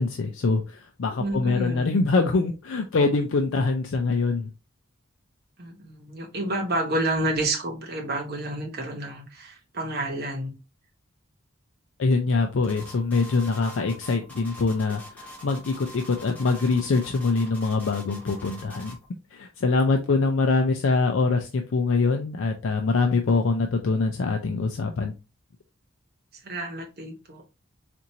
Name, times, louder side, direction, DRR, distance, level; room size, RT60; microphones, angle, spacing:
voice 1, 0.0-4.5 12.0-18.9 19.3-25.1, left 3 dB, 65° left, 0.4 m, -24 dB
voice 2, 1.2-1.9 5.6-10.6 20.0-20.1 26.4-27.4, right 1 dB, 45° right, 0.9 m, -30 dB
sound 1, 12.6-19.1, left 1 dB, 5° left, 0.9 m, -44 dB
4.4 x 2.5 x 2.7 m
head